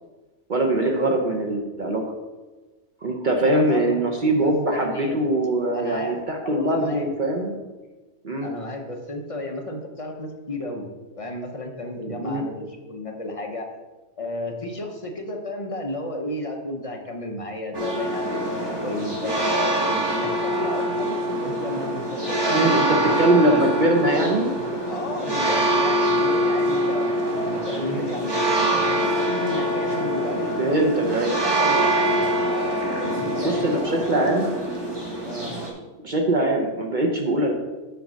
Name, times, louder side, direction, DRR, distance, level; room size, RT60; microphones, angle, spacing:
voice 1, 0.5-2.0 3.0-7.5 8.2-8.5 12.2-12.4 22.5-24.5 27.8-28.0 30.6-31.3 33.4-34.5 36.0-37.5, right 1 dB, 45° right, 2 dB, 0.9 m, -22 dB
voice 2, 3.4-4.0 4.3-5.2 5.7-7.1 8.4-10.9 11.2-13.7 14.2-18.5 18.8-21.1 21.4-23.7 24.9-27.0 27.4-32.3 33.0-34.2 35.2-35.6, left 1 dB, 30° left, 2 dB, 0.9 m, -33 dB
sound 1, 17.7-35.7, right 1 dB, 20° right, 1.2 m, -24 dB
6.9 x 3.8 x 6.3 m, 1.2 s
omnidirectional pair, 1.2 m